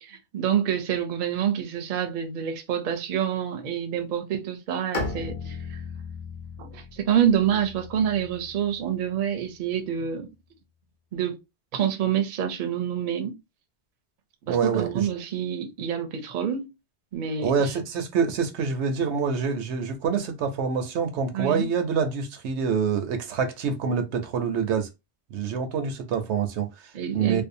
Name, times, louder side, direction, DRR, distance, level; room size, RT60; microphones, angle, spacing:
voice 1, 0.0-5.8 6.6-10.3 11.1-11.4 11.7-13.4 14.5-16.7 17.1-17.7 21.3-21.7 26.9-27.4, right 9 dB, 55° right, 0.6 m, -27 dB
Bowed string instrument, 4.9-8.9, left 4 dB, 50° left, 0.9 m, -36 dB
voice 2, 14.5-15.1 17.4-24.9 25.3-27.4, right 6 dB, 85° right, 0.9 m, -26 dB
2.6 x 2.0 x 2.6 m
omnidirectional pair, 1.1 m